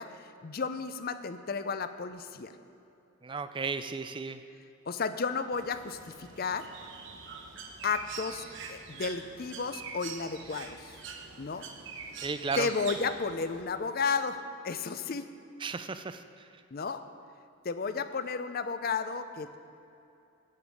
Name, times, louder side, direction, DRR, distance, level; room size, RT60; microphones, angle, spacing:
voice 1, 0.0-2.5 4.9-6.7 7.8-11.0 11.4-11.7 12.6-15.3 16.7-17.0 17.6-19.6, left 5 dB, 45° left, 11 dB, 0.5 m, -33 dB
voice 2, 3.2-4.4 12.2-12.7 15.6-16.2, right 4 dB, 20° right, 11 dB, 0.4 m, -34 dB
Bird, 5.5-13.6, right 5 dB, 55° right, 1.1 m, -44 dB
15.0 x 5.2 x 8.4 m, 2.8 s
head